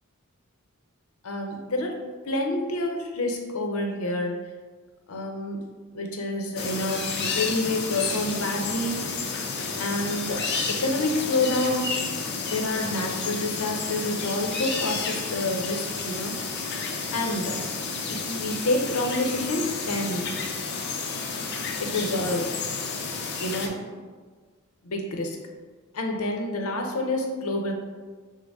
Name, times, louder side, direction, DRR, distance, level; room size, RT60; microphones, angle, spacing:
voice 1, 1.2-2.0 2.3-4.4 5.1-5.6 5.9-9.4 9.8-11.9 12.4-16.3 17.1-17.6 18.1-20.3 21.8-22.6 23.4-23.8 24.8-25.4 25.9-27.7, left 1 dB, 90° left, 2 dB, 0.7 m, -28 dB
sound 1, 6.6-23.7, left 4 dB, 50° left, 0.5 m, -31 dB
6.2 x 2.1 x 3.5 m, 1.5 s
head